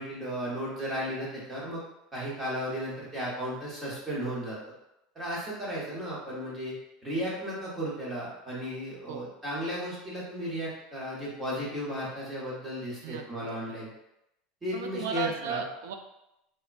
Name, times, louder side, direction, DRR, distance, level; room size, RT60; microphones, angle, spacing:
voice 1, 0.0-1.8 2.1-4.6 5.1-6.7 7.0-13.9 14.6-15.6, equal, 15° right, -6 dB, 0.9 m, -34 dB
voice 2, 13.0-13.8 14.7-15.9, right 7 dB, 85° right, 6 dB, 0.3 m, -36 dB
3.4 x 2.1 x 2.4 m, 0.87 s
supercardioid pair, 160°, 0 cm